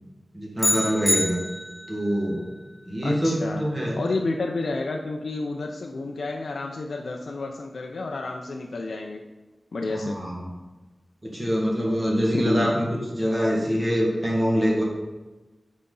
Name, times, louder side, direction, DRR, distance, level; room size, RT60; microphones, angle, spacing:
voice 1, 0.3-1.4 1.9-2.5 2.8-4.0 9.9-10.5 11.2-12.9 13.1-14.8, equal, 20° right, -3 dB, 1.7 m, -24 dB
sound 1, 0.6-2.0, left 1 dB, 15° left, 0.8 m, -25 dB
voice 2, 3.0-3.6 4.0-9.2 9.7-10.2 12.3-12.7, left 3 dB, 85° left, 1 dB, 0.5 m, -30 dB
8.5 x 4.1 x 3.8 m, 1.2 s
wide cardioid pair, 100°, 0 cm